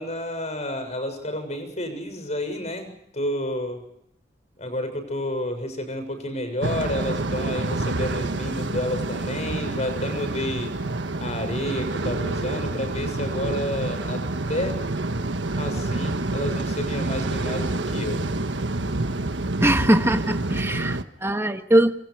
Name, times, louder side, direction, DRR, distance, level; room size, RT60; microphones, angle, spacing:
voice 1, 0.0-3.8 4.6-10.8 11.2-14.2 14.5-14.8 15.5-18.2, left 1 dB, 40° left, 6.7 m, -30 dB
sound 1, 6.6-21.0, right 2 dB, 90° right, 1.4 m, -28 dB
voice 2, 19.6-21.9, right 1 dB, 15° right, 1.5 m, -21 dB
27.5 x 27.0 x 4.8 m
head